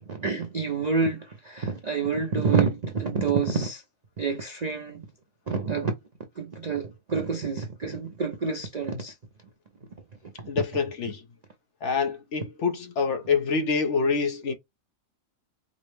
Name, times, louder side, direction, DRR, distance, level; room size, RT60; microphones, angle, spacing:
voice 1, 0.1-3.8 4.2-5.1 5.5-5.9 6.4-9.1 10.4-10.5, right 5 dB, 55° right, 0.4 m, -28 dB
voice 2, 10.5-11.2 11.8-14.5, left 5 dB, 60° left, 0.8 m, -26 dB
5.0 x 2.1 x 3.2 m
omnidirectional pair, 1.6 m